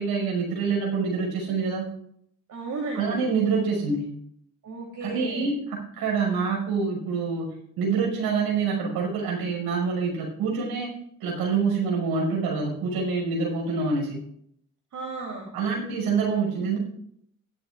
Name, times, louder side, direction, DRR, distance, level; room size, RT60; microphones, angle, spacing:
voice 1, 0.0-1.9 2.9-4.1 5.0-10.9 11.2-14.2 15.5-16.8, right 5 dB, 65° right, -1 dB, 6.0 m, -26 dB
voice 2, 2.5-3.2 4.6-5.5 14.9-15.5, right 3 dB, 50° right, -1 dB, 3.5 m, -34 dB
16.0 x 12.5 x 2.5 m, 0.69 s
hypercardioid pair, 55°, 40 cm